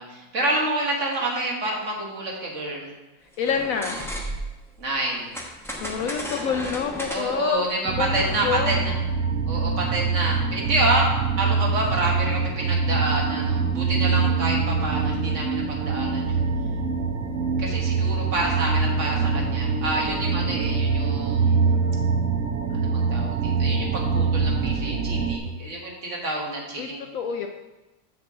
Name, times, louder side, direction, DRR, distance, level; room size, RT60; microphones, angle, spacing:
voice 1, 0.0-2.9 4.8-5.3 7.1-8.9 9.5-16.4 17.6-21.8 22.7-27.0, right 2 dB, 45° right, -2 dB, 1.7 m, -28 dB
voice 2, 3.4-4.1 5.8-7.7 8.0-8.9 26.8-26.9 27.1-27.5, left 7 dB, 70° left, 4 dB, 0.8 m, -27 dB
sound 1, 3.4-4.6 5.3-8.5, equal, 5° left, 0.4 m, -34 dB
sound 2, 7.9-25.4, right 4 dB, 65° right, 0.9 m, -24 dB
6.8 x 6.8 x 3.7 m, 1.1 s
omnidirectional pair, 1.8 m